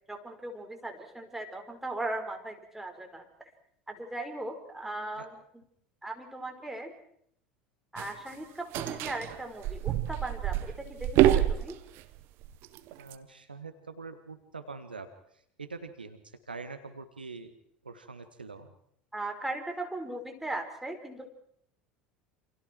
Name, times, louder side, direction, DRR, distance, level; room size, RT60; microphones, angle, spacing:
voice 1, 0.1-3.3 3.9-5.6 6.0-6.9 7.9-11.8 19.1-21.3, right 2 dB, 5° right, 4 dB, 5.0 m, -38 dB
sound 1, 8.0-8.1 8.7-12.0 12.4-13.1, right 13 dB, 50° right, 1.5 m, -27 dB
voice 2, 13.0-15.1 15.6-16.2 16.5-17.5 17.9-18.7, right 4 dB, 85° right, 9 dB, 1.8 m, -43 dB
28.5 x 27.5 x 4.7 m, 0.69 s
figure-of-eight pair, 70°, 5 cm